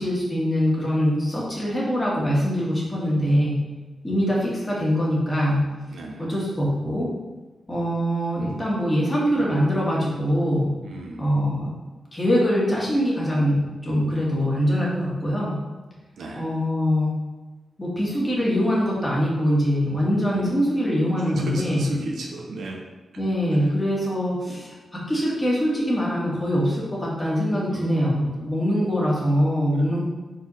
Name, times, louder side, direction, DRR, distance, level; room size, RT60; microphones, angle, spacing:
voice 1, 0.0-3.6 4.0-5.7 6.2-7.1 7.7-10.7 11.2-11.7 12.1-15.6 16.3-17.1 17.8-22.0 23.2-30.0, equal, 15° left, -6 dB, 2.0 m, -23 dB
voice 2, 5.9-6.4 10.8-11.3 16.2-16.4 20.3-20.5 21.2-22.8 27.7-28.6 29.7-29.9, right 2 dB, 80° right, 0 dB, 0.9 m, -35 dB
4.7 x 4.2 x 5.5 m, 1.2 s
wide cardioid pair, 125°, 0 cm